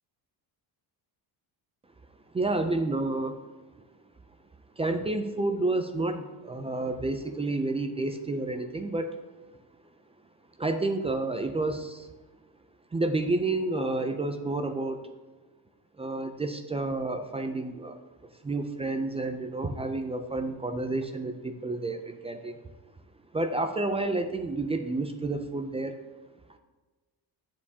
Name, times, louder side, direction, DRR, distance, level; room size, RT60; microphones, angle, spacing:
voice 1, 2.3-3.4 4.8-9.1 10.6-12.1 12.9-15.0 16.0-18.0 18.4-22.5 23.3-25.9, right 2 dB, 15° right, 6 dB, 0.3 m, -30 dB
10.5 x 7.2 x 2.8 m, 1.2 s
cardioid pair, 155°, 40 cm